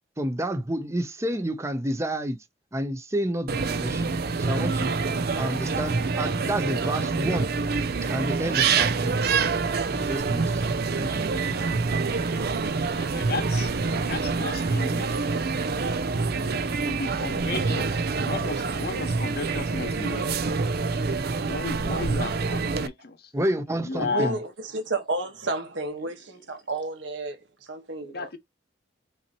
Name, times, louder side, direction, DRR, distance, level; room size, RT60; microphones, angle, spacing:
voice 1, 0.2-2.4 2.7-4.9 5.4-7.5 8.1-9.2 9.9-11.3 23.3-24.4, right 1 dB, 15° right, 0.8 m, -30 dB
sound 1, 3.5-22.9, right 4 dB, 55° right, 0.5 m, -26 dB
voice 2, 12.9-13.8 14.0-15.3 16.8-20.3 21.4-23.3 23.7-24.4 26.0-26.1 28.0-28.4, left 3 dB, 55° left, 0.9 m, -34 dB
voice 3, 23.9-27.4 27.7-28.4, right 2 dB, 75° right, 1.5 m, -31 dB
5.7 x 2.9 x 3.0 m
head